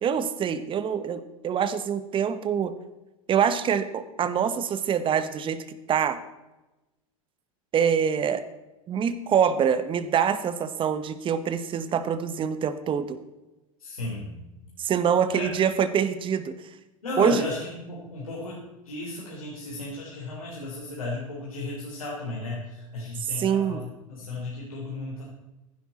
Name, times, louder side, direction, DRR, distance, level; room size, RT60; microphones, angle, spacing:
voice 1, 0.0-2.7 3.3-5.6 5.9-6.2 7.7-8.4 8.9-13.2 14.8-16.5 17.2-17.4 23.4-23.8, right 8 dB, 30° right, 13 dB, 1.2 m, -25 dB
voice 2, 13.8-14.5 15.3-15.5 17.0-23.8 24.1-25.3, left 2 dB, 85° left, -5 dB, 3.5 m, -34 dB
15.5 x 10.5 x 4.3 m, 1.0 s
hypercardioid pair, 90°, 18 cm